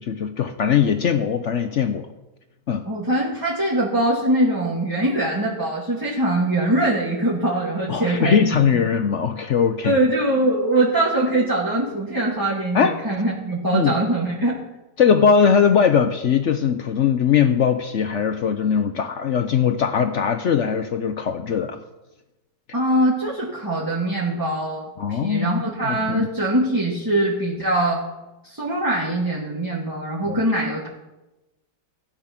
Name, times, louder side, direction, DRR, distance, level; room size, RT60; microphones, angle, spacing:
voice 1, 0.0-2.1 2.7-2.8 7.9-10.0 12.7-13.0 13.7-13.9 15.0-21.8 25.0-26.3 30.3-30.4, left 7 dB, 65° left, 9 dB, 0.7 m, -20 dB
voice 2, 2.9-8.7 9.8-14.6 22.7-28.0 28.4-30.9, right 1 dB, 10° right, -6 dB, 1.9 m, -22 dB
15.5 x 8.9 x 5.9 m, 1.0 s
omnidirectional pair, 1.9 m